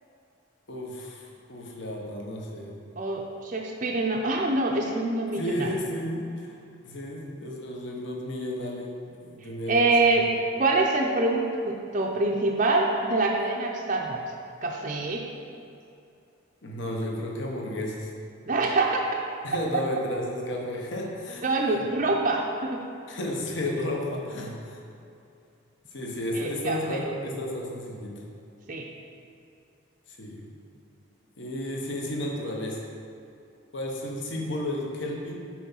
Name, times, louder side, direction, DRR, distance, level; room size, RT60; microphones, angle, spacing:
voice 1, 0.7-2.7 5.4-6.5 6.8-9.9 16.6-18.1 19.4-21.4 23.1-24.8 25.9-28.1 30.2-30.4 31.4-32.8 33.7-35.4, left 1 dB, 60° left, -1 dB, 0.9 m, -32 dB
voice 2, 3.0-5.7 9.7-10.3 10.6-14.2 14.6-15.3 18.5-19.0 19.7-19.8 21.4-22.8 26.3-27.1 28.7-28.9, right 2 dB, 35° right, -1 dB, 0.5 m, -25 dB
5.9 x 4.4 x 5.6 m, 2.5 s
head